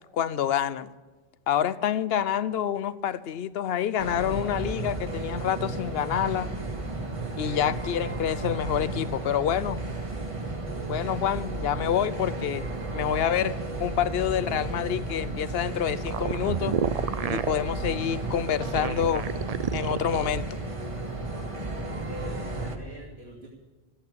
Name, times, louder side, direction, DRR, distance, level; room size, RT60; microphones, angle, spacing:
voice 1, 0.1-0.9 1.5-6.6 7.4-9.8 10.9-12.7 12.9-16.8 17.3-19.3 19.7-20.4, left 9 dB, 70° left, 16 dB, 0.9 m, -27 dB
sound 1, 4.0-22.8, right 2 dB, 30° right, 1.6 m, -33 dB
sound 2, 16.0-17.6 18.5-20.3, right 8 dB, 50° right, 0.4 m, -29 dB
voice 2, 21.6-23.5, equal, 75° right, -5 dB, 2.7 m, -43 dB
14.5 x 8.9 x 8.5 m, 1.3 s
omnidirectional pair, 1.1 m